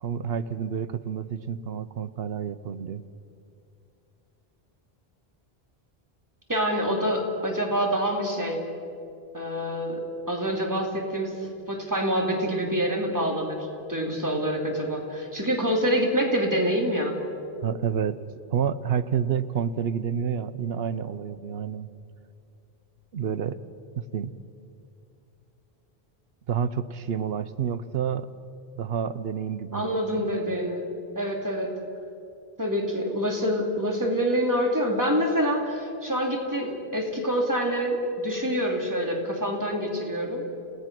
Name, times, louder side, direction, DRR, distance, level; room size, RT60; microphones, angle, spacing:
voice 1, 0.0-3.0 17.6-18.2 18.5-21.9 23.1-23.6 24.0-24.3 26.5-28.3 28.8-30.3, right 8 dB, 75° right, 14 dB, 1.0 m, -29 dB
voice 2, 6.5-8.6 9.3-11.3 11.7-17.1 29.7-30.9 31.1-31.7 32.6-40.4, equal, 20° right, 1 dB, 2.7 m, -26 dB
29.5 x 17.5 x 6.0 m, 2.6 s
omnidirectional pair, 1.0 m